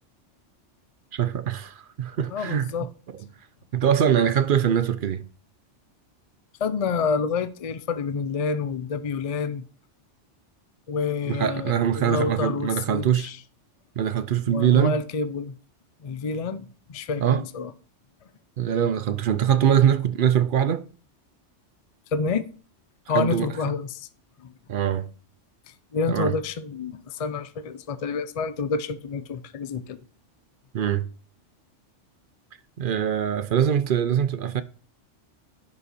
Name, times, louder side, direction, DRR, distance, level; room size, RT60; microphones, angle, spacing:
voice 1, 1.1-2.7 3.7-5.2 11.3-13.3 14.0-15.0 17.2-17.4 18.6-20.9 23.1-23.5 24.7-25.1 26.1-26.3 30.7-31.1 32.8-34.6, right 9 dB, 55° right, 0.6 m, -22 dB
voice 2, 2.3-2.9 6.6-9.6 10.9-13.4 14.5-15.6 16.0-17.7 22.1-22.4 23.1-24.1 24.4-24.5 25.7-30.0, left 5 dB, 40° left, 0.5 m, -28 dB
10.5 x 5.6 x 4.2 m
omnidirectional pair, 1.2 m